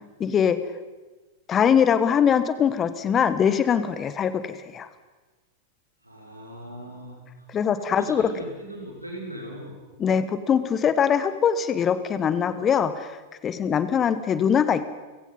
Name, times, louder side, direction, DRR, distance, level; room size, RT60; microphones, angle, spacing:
voice 1, 0.2-0.6 1.5-4.9 7.5-8.3 10.0-13.2 13.4-14.8, left 7 dB, 25° left, 13 dB, 1.3 m, -22 dB
voice 2, 6.0-7.5 7.8-9.7, right 1 dB, 90° right, -1 dB, 5.6 m, -39 dB
30.0 x 17.0 x 5.6 m, 1.2 s
figure-of-eight pair, 95°, 0 cm